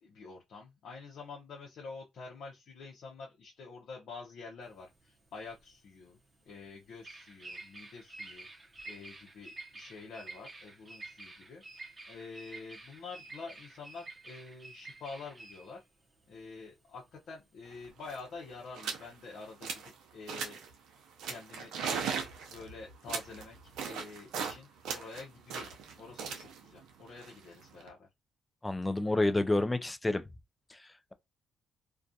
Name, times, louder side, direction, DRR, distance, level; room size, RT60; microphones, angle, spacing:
voice 1, 0.0-6.2 6.5-8.5 8.8-15.8 16.3-20.6 21.3-21.7 22.5-23.6 23.8-28.1, left 4 dB, 65° left, 0.7 m, -47 dB
Bird vocalization bird call bird song, 4.6-17.9, right 2 dB, 30° right, 0.7 m, -50 dB
sound 1, 17.7-17.8 18.0-18.3 18.7-19.1 19.4-19.9 20.3-20.7 21.2-24.6 24.8-27.9, right 6 dB, 90° right, 0.5 m, -38 dB
voice 2, 28.6-30.2 30.7-30.8, left 2 dB, 15° left, 0.4 m, -29 dB
2.3 x 2.3 x 2.6 m
cardioid pair, 90°, 0 cm